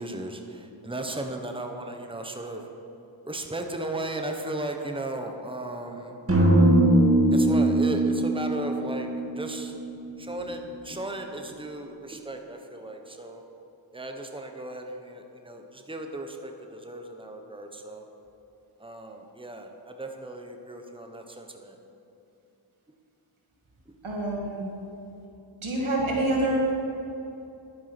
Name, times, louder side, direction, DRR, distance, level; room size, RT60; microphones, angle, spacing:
voice 1, 0.0-2.7 3.2-6.2 7.3-9.1 9.3-9.7 10.2-13.4 13.9-18.0 18.8-21.8, right 1 dB, 10° right, 4 dB, 1.2 m, -36 dB
sound 1, 6.3-10.4, right 1 dB, 30° right, 2.2 m, -21 dB
voice 2, 24.0-24.6 25.6-26.6, right 1 dB, 90° right, -3 dB, 2.4 m, -26 dB
11.0 x 9.5 x 6.1 m, 2.9 s
cardioid pair, 45°, 47 cm